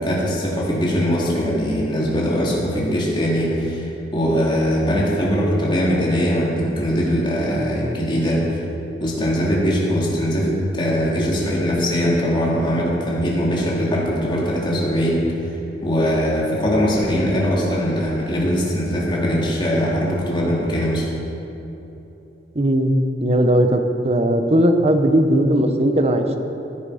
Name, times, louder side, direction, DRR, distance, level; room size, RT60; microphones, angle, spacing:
voice 1, 0.0-8.6 9.0-15.3 15.8-21.0, equal, 25° left, -5 dB, 2.9 m, -21 dB
voice 2, 22.5-22.9 23.2-26.4, right 1 dB, 35° right, 6 dB, 1.0 m, -17 dB
16.0 x 9.5 x 5.0 m, 3.0 s
head